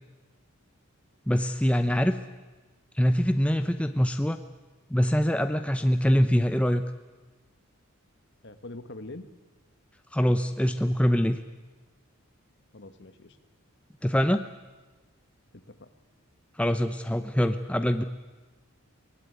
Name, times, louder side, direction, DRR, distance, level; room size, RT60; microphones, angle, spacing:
voice 1, 1.3-2.2 3.0-4.4 4.9-6.8 10.1-11.4 14.0-14.4 16.6-18.0, equal, 5° left, 8 dB, 0.7 m, -24 dB
voice 2, 8.4-9.3 12.7-13.4 15.5-15.9, left 2 dB, 55° left, 10 dB, 1.6 m, -43 dB
23.5 x 18.0 x 9.5 m, 1.2 s
head